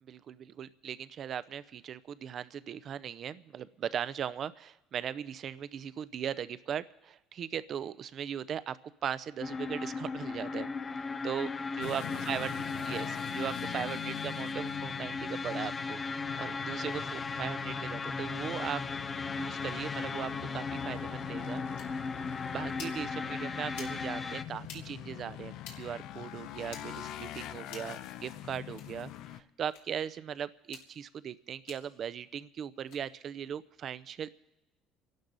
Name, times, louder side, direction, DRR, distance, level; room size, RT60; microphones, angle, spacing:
voice 1, 0.0-8.8 9.0-12.6 12.9-16.0 16.4-18.8 19.3-21.6 22.5-34.4, right 9 dB, 50° right, 16 dB, 0.6 m, -39 dB
sound 1, 9.4-24.4, left 4 dB, 25° left, 0.5 m, -37 dB
sound 2, 11.8-29.4, left 12 dB, 70° left, 0.7 m, -44 dB
sound 3, 21.8-21.9 22.7-23.0 23.7-24.0 24.6-24.8 25.6-25.8 26.7-26.8 27.7-28.0 28.7-28.9 29.7-29.8 30.6-30.9 31.7-31.8 32.8-33.0, left 7 dB, 85° left, 2.5 m, -47 dB
27.0 x 12.0 x 4.0 m, 0.94 s
supercardioid pair, 95°, 0 cm